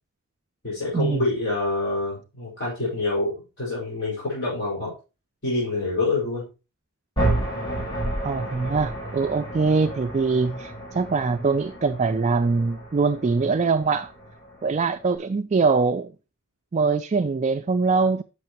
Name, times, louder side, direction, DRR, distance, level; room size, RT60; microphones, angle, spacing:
voice 1, 0.6-4.9 5.4-6.5, left 2 dB, 55° left, 5.0 m, -26 dB
sound 1, 7.2-15.2, right 1 dB, 20° left, 4.7 m, -31 dB
voice 2, 8.2-14.1 14.6-16.1 16.7-18.2, right 4 dB, 30° right, 0.3 m, -23 dB
10.5 x 6.6 x 3.0 m
head